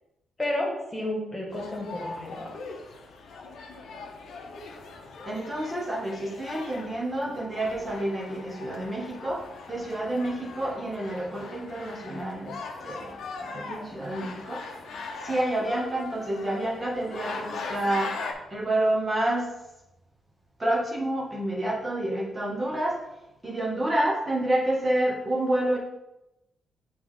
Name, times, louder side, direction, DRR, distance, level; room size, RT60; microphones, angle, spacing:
voice 1, 0.4-2.4, left 1 dB, 20° left, -2 dB, 1.6 m, -31 dB
sound 1, 1.5-18.3, left 4 dB, 80° left, 0.8 m, -40 dB
voice 2, 5.3-13.2 13.5-14.7 15.2-18.2 18.5-19.5 20.6-23.0 23.4-25.8, right 1 dB, 20° right, -4 dB, 1.0 m, -29 dB
8.5 x 3.1 x 3.7 m, 0.92 s
cardioid pair, 135°, 0 cm